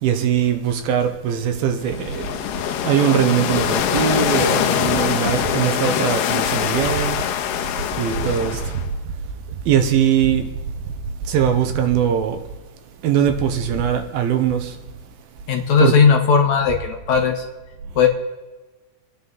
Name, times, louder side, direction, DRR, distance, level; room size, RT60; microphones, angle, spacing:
voice 1, 0.0-2.4 2.8-7.2 8.0-8.6 9.7-10.5 11.3-12.4 13.0-14.8 15.8-15.9, right 9 dB, 80° right, 2.7 m, -20 dB
sound 1, 1.8-8.9, left 10 dB, 75° left, 2.3 m, -23 dB
voice 2, 15.5-17.4 18.0-18.1, left 6 dB, 60° left, 2.2 m, -16 dB
28.5 x 10.0 x 4.0 m
omnidirectional pair, 4.5 m